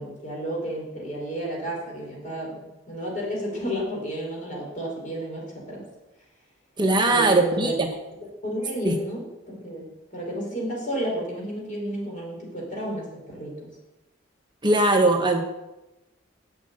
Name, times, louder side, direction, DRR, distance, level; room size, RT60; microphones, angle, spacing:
voice 1, 0.0-5.8 7.1-7.8 8.4-13.7, right 1 dB, 45° left, -2 dB, 4.8 m, -32 dB
voice 2, 6.8-7.9 8.8-9.0 14.6-15.4, right 2 dB, 25° right, 4 dB, 0.9 m, -20 dB
7.9 x 7.6 x 8.6 m, 1.0 s
head